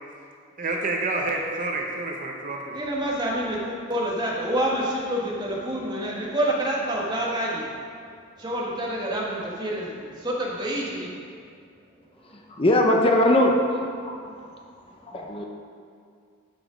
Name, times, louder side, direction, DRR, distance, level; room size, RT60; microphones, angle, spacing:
voice 1, 0.6-2.8, right 2 dB, 40° right, 0 dB, 0.8 m, -28 dB
voice 2, 2.7-7.7 8.4-11.1, right 1 dB, 20° right, -4 dB, 1.5 m, -27 dB
voice 3, 12.6-14.2 15.1-15.4, left 1 dB, 25° left, 1 dB, 0.8 m, -20 dB
12.0 x 5.1 x 5.1 m, 2.2 s
head